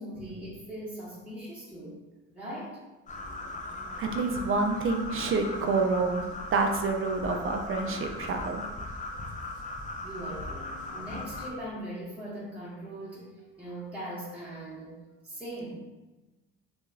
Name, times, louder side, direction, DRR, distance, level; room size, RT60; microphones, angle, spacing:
voice 1, 0.0-2.0 2.3-2.8 10.0-15.0 15.2-15.8, right 1 dB, 5° right, -9 dB, 1.0 m, -40 dB
sound 1, 3.1-11.5, left 2 dB, 20° left, 0.4 m, -38 dB
voice 2, 4.0-6.2 6.5-8.6, right 3 dB, 35° right, 4 dB, 0.4 m, -28 dB
2.8 x 2.4 x 2.3 m, 1.1 s
hypercardioid pair, 45°, 38 cm